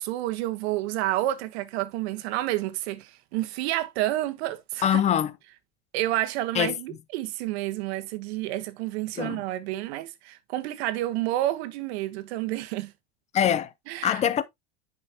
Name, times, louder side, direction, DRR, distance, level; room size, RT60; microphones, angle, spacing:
voice 1, 0.0-5.0 5.9-12.9 13.9-14.2, right 15 dB, 70° right, 1.3 m, -29 dB
voice 2, 4.8-5.3 6.5-6.7 9.2-9.4 13.3-13.7 14.0-14.4, left 9 dB, 20° left, 0.6 m, -23 dB
9.5 x 5.2 x 2.9 m
supercardioid pair, 160°, 33 cm